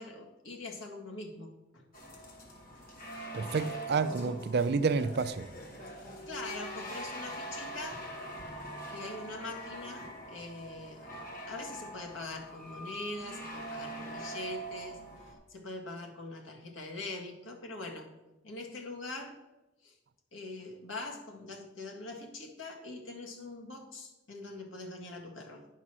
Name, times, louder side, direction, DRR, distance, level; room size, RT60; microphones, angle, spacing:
voice 1, 0.0-1.8 5.9-8.0 8.9-18.1 18.4-19.4 19.8-20.0 20.3-25.7, left 2 dB, 75° left, 1.8 m, -43 dB
sound 1, 1.9-15.3, right 1 dB, 50° left, 1.9 m, -43 dB
voice 2, 3.3-5.5, right 4 dB, 55° right, 0.5 m, -29 dB
9.9 x 5.6 x 6.1 m
head